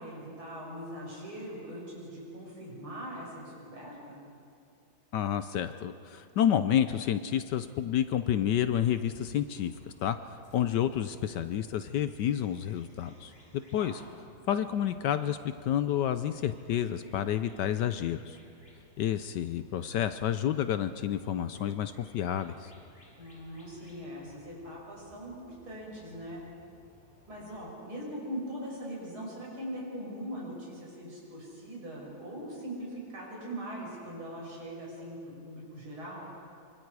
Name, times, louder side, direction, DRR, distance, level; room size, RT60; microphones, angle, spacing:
voice 1, 0.0-4.2 13.8-14.1 23.2-26.4 27.3-36.3, equal, 85° right, -3 dB, 6.6 m, -41 dB
voice 2, 5.1-9.7 10.0-10.2 10.5-14.0 14.5-18.4 19.0-22.7, left 10 dB, 70° left, 11 dB, 1.1 m, -29 dB
sound 1, 8.0-27.6, left 1 dB, 25° left, 4.1 m, -60 dB
25.0 x 25.0 x 4.8 m, 2.4 s
omnidirectional pair, 2.2 m